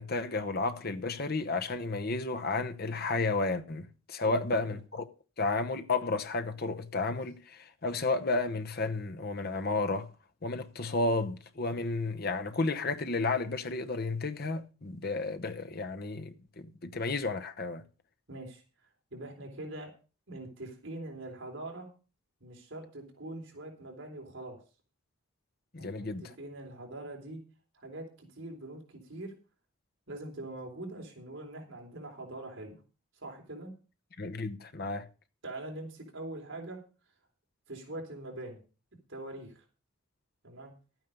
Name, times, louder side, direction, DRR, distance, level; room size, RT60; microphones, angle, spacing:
voice 1, 0.0-5.1 5.4-10.1 10.4-17.8 25.7-26.3 34.2-35.1, left 3 dB, 45° left, 0.9 m, -32 dB
voice 2, 4.2-4.8 18.3-18.6 19.1-19.9 20.3-21.9 22.4-24.6 25.8-27.4 27.7-29.3 30.1-32.8 33.2-33.7 35.4-36.8 37.7-38.6 39.1-39.6 40.4-40.7, right 2 dB, 60° right, 3.8 m, -43 dB
12.5 x 9.2 x 5.4 m
head